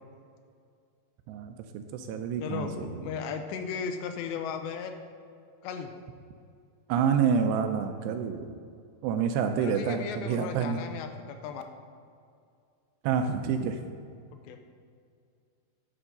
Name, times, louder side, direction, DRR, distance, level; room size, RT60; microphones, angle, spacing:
voice 1, 1.3-3.0 6.9-8.6 9.0-10.8 13.0-13.8, right 7 dB, 80° right, 6 dB, 2.7 m, -28 dB
voice 2, 2.4-4.9 5.6-5.9 9.6-11.6 14.5-14.6, left 6 dB, 90° left, 6 dB, 2.9 m, -36 dB
11.0 x 6.2 x 6.6 m, 2.3 s
omnidirectional pair, 5.0 m